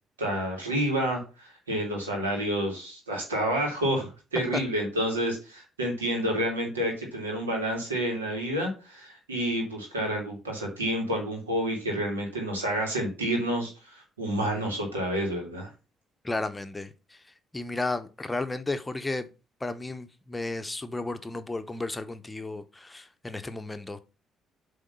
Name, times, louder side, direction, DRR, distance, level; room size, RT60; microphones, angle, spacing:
voice 1, 0.2-15.7, right 1 dB, 80° right, 2.2 m, -29 dB
voice 2, 16.2-16.9 17.5-19.3 19.6-24.0, left 2 dB, 15° left, 0.8 m, -33 dB
7.4 x 3.5 x 5.5 m
figure-of-eight pair, 45°, 0 cm